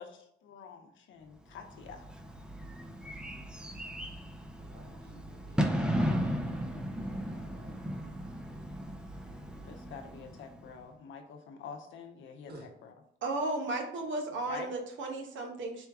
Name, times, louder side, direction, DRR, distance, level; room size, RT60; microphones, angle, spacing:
voice 1, 0.0-2.0 9.6-12.9 14.5-14.7, left 6 dB, 75° left, 5 dB, 0.8 m, -46 dB
Bird / Fireworks, 1.6-10.8, equal, 5° right, 0.5 m, -36 dB
voice 2, 4.6-6.0 7.2-8.5 10.0-10.4 12.5-12.7, right 1 dB, 55° right, 0 dB, 1.3 m, -55 dB
voice 3, 13.2-15.9, right 2 dB, 70° right, 2 dB, 0.9 m, -34 dB
4.3 x 2.3 x 4.6 m, 0.76 s
cardioid pair, 90°, 20 cm